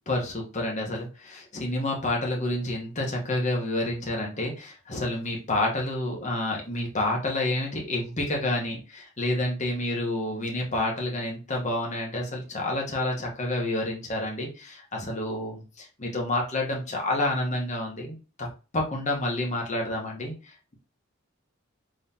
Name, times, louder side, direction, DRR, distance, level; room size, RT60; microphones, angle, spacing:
voice 1, 0.1-18.5 18.7-20.3, left 1 dB, 35° left, 0 dB, 1.1 m, -29 dB
3.7 x 3.1 x 2.8 m, 0.33 s
head